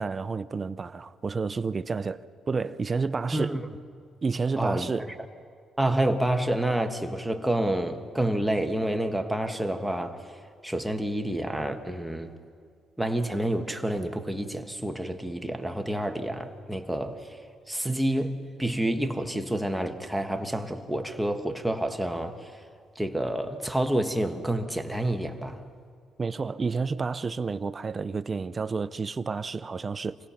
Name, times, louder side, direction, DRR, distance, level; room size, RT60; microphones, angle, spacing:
voice 1, 0.0-3.5 4.2-5.1 26.2-30.2, right 4 dB, 35° right, 0.6 m, -30 dB
voice 2, 3.3-3.6 4.6-4.9 5.8-10.3 10.6-12.4 13.0-17.4 17.7-22.5 22.9-25.6, right 1 dB, 5° right, 1.6 m, -28 dB
27.0 x 17.5 x 5.9 m
cardioid pair, 90°, 0 cm